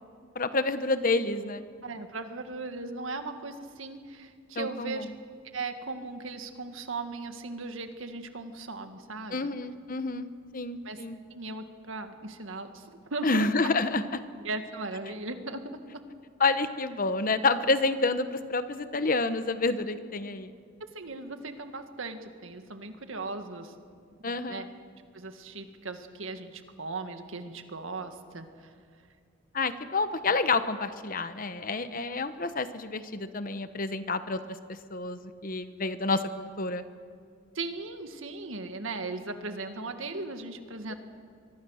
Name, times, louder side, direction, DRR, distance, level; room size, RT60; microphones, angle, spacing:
voice 1, 0.3-1.6 4.5-5.1 9.3-11.2 13.2-14.2 16.4-20.5 24.2-24.7 29.5-34.6 34.9-36.8, left 3 dB, 45° left, 11 dB, 1.0 m, -29 dB
voice 2, 1.8-5.1 5.5-9.5 10.8-11.0 11.3-13.5 14.4-16.0 20.8-23.7 24.2-24.7 25.1-28.7 37.6-40.9, right 3 dB, 80° right, 7 dB, 1.8 m, -38 dB
25.0 x 23.0 x 6.5 m, 2.2 s
head